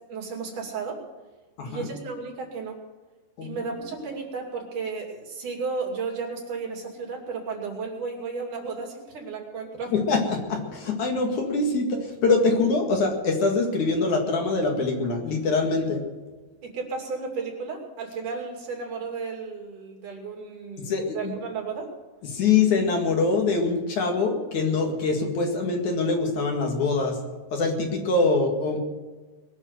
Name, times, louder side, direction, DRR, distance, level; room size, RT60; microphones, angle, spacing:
voice 1, 0.1-1.0 1.7-2.8 3.4-9.9 16.6-21.9, right 4 dB, 60° right, 0 dB, 4.3 m, -33 dB
voice 2, 9.9-16.1 20.8-21.3 22.2-27.2 27.5-28.8, left 3 dB, 60° left, 2 dB, 3.2 m, -24 dB
21.5 x 7.3 x 7.9 m, 1.3 s
omnidirectional pair, 4.1 m